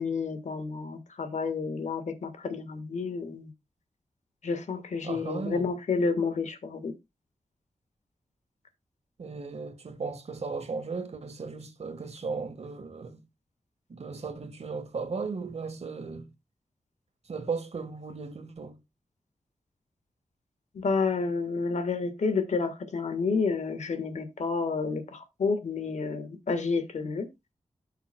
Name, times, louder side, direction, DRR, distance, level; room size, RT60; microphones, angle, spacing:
voice 1, 0.0-3.5 4.4-6.9 20.7-27.3, left 4 dB, 80° left, 1.5 m, -30 dB
voice 2, 5.0-5.7 9.2-13.2 13.9-16.3 17.3-18.8, right 4 dB, 65° right, 1.5 m, -36 dB
14.5 x 5.8 x 2.2 m
wide cardioid pair, 70°, 12 cm